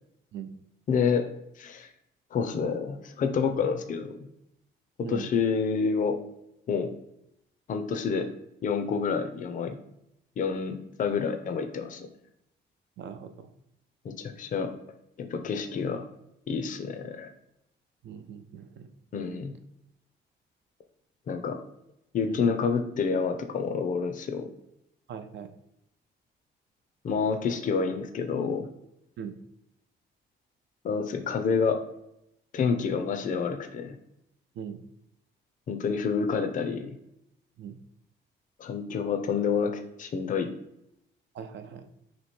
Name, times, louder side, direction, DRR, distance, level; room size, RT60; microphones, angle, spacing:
voice 1, 0.9-1.2 1.6-1.9 2.3-4.2 5.0-6.2 6.7-6.9 7.7-8.3 8.6-9.8 10.4-12.1 14.0-14.7 15.2-16.0 16.5-17.3 19.1-19.5 21.3-21.6 22.1-24.5 27.0-28.7 30.8-31.8 32.5-34.0 35.7-37.0 38.6-40.5, left 5 dB, 40° left, 7 dB, 0.5 m, -28 dB
voice 2, 13.0-13.5 15.5-15.6 18.0-18.9 22.3-22.4 25.1-25.5 29.2-29.4 34.5-34.8 37.6-37.8 41.3-41.9, right 7 dB, 65° right, 9 dB, 0.5 m, -40 dB
3.0 x 2.7 x 4.2 m, 0.80 s
cardioid pair, 90°, 20 cm